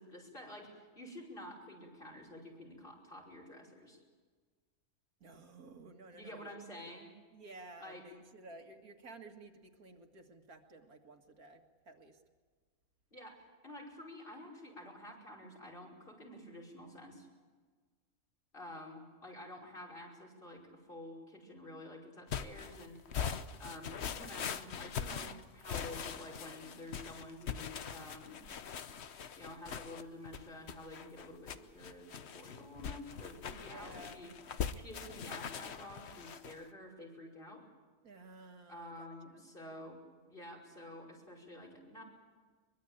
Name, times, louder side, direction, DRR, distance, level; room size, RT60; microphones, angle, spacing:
voice 1, 0.0-4.0 6.1-7.1 7.8-8.0 13.1-13.3 13.6-17.3 18.5-20.6 20.9-23.0 23.6-28.4 29.4-32.1 32.3-34.3 34.7-37.6 38.7-40.0 40.2-42.0, left 1 dB, 35° left, -1 dB, 5.8 m, -50 dB
voice 2, 5.2-6.5 6.7-6.8 7.3-12.2 33.5-34.2 34.7-34.9 38.0-39.1 39.6-39.9, right 2 dB, 75° right, 4 dB, 2.4 m, -54 dB
sound 1, 22.3-36.6, left 7 dB, 50° left, 1.1 m, -42 dB
23.0 x 22.5 x 9.0 m, 1.5 s
omnidirectional pair, 1.6 m